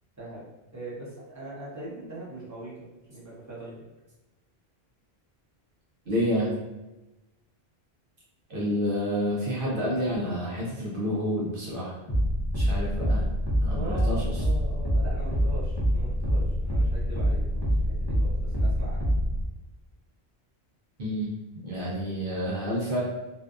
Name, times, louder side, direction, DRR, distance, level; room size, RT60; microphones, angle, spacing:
voice 1, 0.7-3.9 13.7-19.1, right 1 dB, 15° right, -9 dB, 0.9 m, -41 dB
voice 2, 6.1-6.6 8.5-12.0 12.5-13.3 13.6-14.4 21.0-21.3 21.6-23.0, equal, 60° right, -5 dB, 0.8 m, -29 dB
sound 1, 12.1-19.5, equal, 30° left, 0.6 m, -26 dB
2.7 x 2.2 x 2.4 m, 1.0 s
omnidirectional pair, 1.1 m